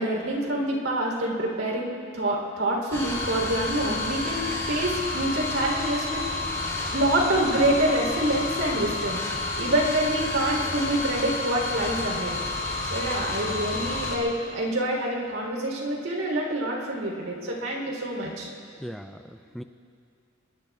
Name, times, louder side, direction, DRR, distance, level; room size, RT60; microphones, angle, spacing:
voice 1, 0.0-6.5 6.9-9.2 9.6-12.4 12.8-18.5, right 1 dB, 80° right, -2 dB, 3.6 m, -26 dB
sound 1, 2.9-14.2, left 3 dB, 15° left, 2.8 m, -30 dB
voice 2, 18.8-19.6, equal, ahead, 7 dB, 0.4 m, -39 dB
26.5 x 22.0 x 2.4 m, 2.4 s
head